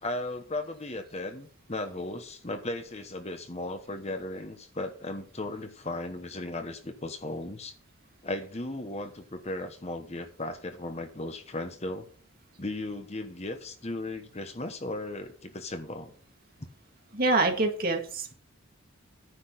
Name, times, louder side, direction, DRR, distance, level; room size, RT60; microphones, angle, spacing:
voice 1, 0.0-7.7 8.2-12.1 12.6-16.1, left 2 dB, 30° left, 8 dB, 1.1 m, -36 dB
voice 2, 17.1-18.3, right 3 dB, 45° right, 3 dB, 2.2 m, -26 dB
10.0 x 6.2 x 6.3 m, 0.43 s
head